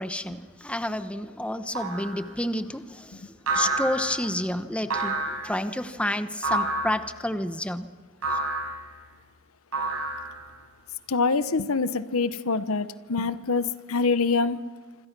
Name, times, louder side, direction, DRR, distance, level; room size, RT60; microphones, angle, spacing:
voice 1, 0.0-3.2 3.5-7.9, left 1 dB, 5° left, 10 dB, 1.0 m, -30 dB
sound 1, 1.8-2.2 3.5-4.2 4.9-5.5 6.4-7.0 8.2-8.7 9.7-10.5, right 2 dB, 85° right, 7.9 m, -28 dB
voice 2, 11.1-14.6, left 4 dB, 80° left, 14 dB, 1.0 m, -25 dB
26.5 x 26.5 x 6.1 m, 1.5 s
head